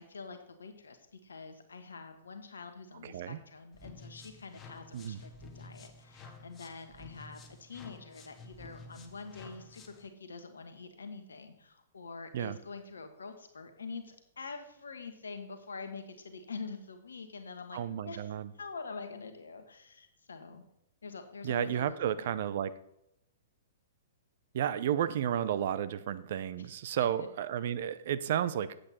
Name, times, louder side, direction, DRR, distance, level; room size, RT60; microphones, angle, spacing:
voice 1, 0.0-20.6 21.0-22.4 26.6-27.3, left 4 dB, 80° left, 7 dB, 1.3 m, -46 dB
voice 2, 3.0-3.4 4.9-5.2 12.3-12.6 17.7-18.5 21.4-22.7 24.5-28.7, right 10 dB, 55° right, 14 dB, 0.6 m, -32 dB
sound 1, 3.7-10.1, left 3 dB, 20° left, 1.3 m, -52 dB
8.7 x 7.7 x 4.3 m, 0.81 s
figure-of-eight pair, 115°, 0 cm